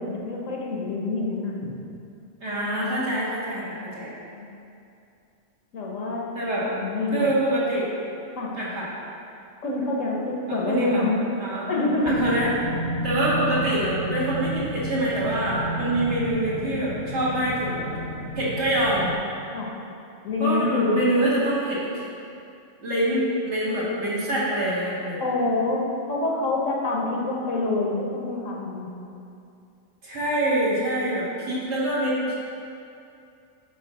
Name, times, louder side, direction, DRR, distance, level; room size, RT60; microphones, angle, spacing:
voice 1, 0.0-1.5 3.7-3.8 4.4-4.5 5.7-6.3 6.6-7.3 8.4-8.6 9.6-11.2 11.7-12.1 19.5-19.8 20.2-21.0 25.2-28.9, left 2 dB, 70° left, -2 dB, 1.3 m, -26 dB
voice 2, 2.4-4.1 6.4-6.7 7.1-7.9 8.5-8.9 10.5-11.1 11.4-11.7 12.0-12.5 13.0-17.8 18.4-19.1 20.4-22.0 22.8-25.2 30.0-32.4, right 1 dB, 55° right, -8 dB, 1.9 m, -25 dB
sound 1, 12.1-19.1, right 1 dB, 20° left, 0.8 m, -32 dB
6.2 x 3.9 x 6.0 m, 2.6 s
omnidirectional pair, 1.4 m